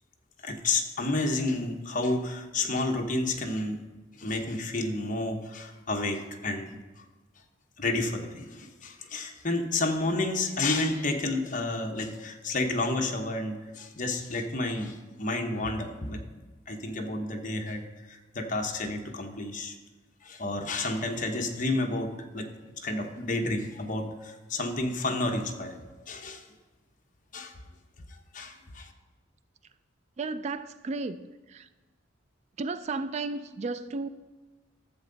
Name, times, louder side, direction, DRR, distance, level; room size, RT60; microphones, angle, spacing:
voice 1, 0.4-3.8 4.2-7.0 7.8-16.2 16.7-19.7 20.2-22.5 22.8-25.8 26.1-26.4 27.3-27.5 28.3-28.9, left 2 dB, 45° left, 1.0 m, -30 dB
voice 2, 30.2-31.7 32.6-34.1, right 3 dB, 35° right, 0.3 m, -34 dB
13.5 x 7.6 x 3.9 m
head